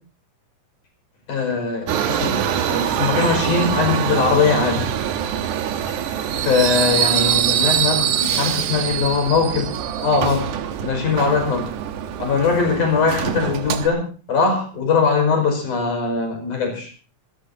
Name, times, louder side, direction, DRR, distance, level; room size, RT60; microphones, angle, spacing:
voice 1, 1.3-4.9 6.4-9.7 10.0-10.5 10.8-11.7 12.2-16.9, left 5 dB, 85° left, 4 dB, 6.8 m, -21 dB
Subway metro underground, 1.9-13.9, right 10 dB, 90° right, 2.7 m, -23 dB
sound 1, 5.6-9.1 9.3-9.8 10.5-10.6, equal, 55° left, 9.0 m, -42 dB
26.5 x 16.5 x 2.8 m, 0.39 s
omnidirectional pair, 3.5 m